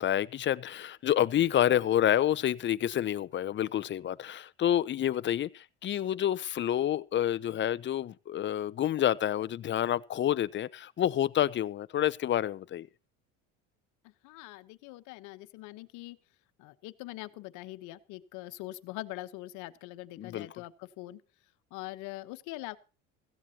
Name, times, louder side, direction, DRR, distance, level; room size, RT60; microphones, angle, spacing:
voice 1, 0.0-12.9 20.2-20.5, left 11 dB, 40° left, 0.7 m, -28 dB
voice 2, 14.2-16.2 16.6-21.2 21.7-22.8, left 18 dB, 75° left, 1.1 m, -43 dB
16.5 x 15.0 x 2.9 m
supercardioid pair, 105°, 30 cm